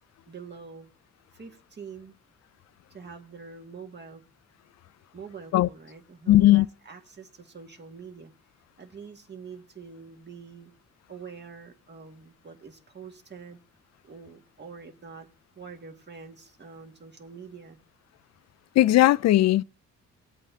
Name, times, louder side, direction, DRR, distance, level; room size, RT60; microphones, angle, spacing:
voice 1, 0.3-0.9 1.3-2.1 2.9-4.2 5.1-8.3 8.8-10.7 11.1-13.6 14.0-15.3 15.6-17.8, right 5 dB, 35° right, 1.9 m, -45 dB
voice 2, 6.3-6.7 18.8-19.6, left 15 dB, 60° left, 0.4 m, -18 dB
19.0 x 8.4 x 2.8 m
cardioid pair, 90°, 30 cm